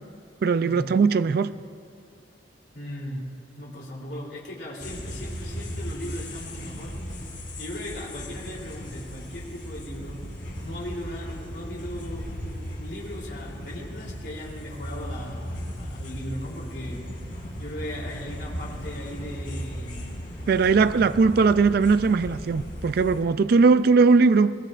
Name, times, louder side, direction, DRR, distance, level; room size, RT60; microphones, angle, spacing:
voice 1, 0.4-1.5 20.5-24.5, right 4 dB, 55° right, 0.3 m, -19 dB
voice 2, 2.7-10.2 10.6-17.1 17.6-20.7, equal, 65° left, 3.3 m, -38 dB
sound 1, 4.8-23.2, equal, 45° left, 3.2 m, -37 dB
21.5 x 20.5 x 2.5 m
head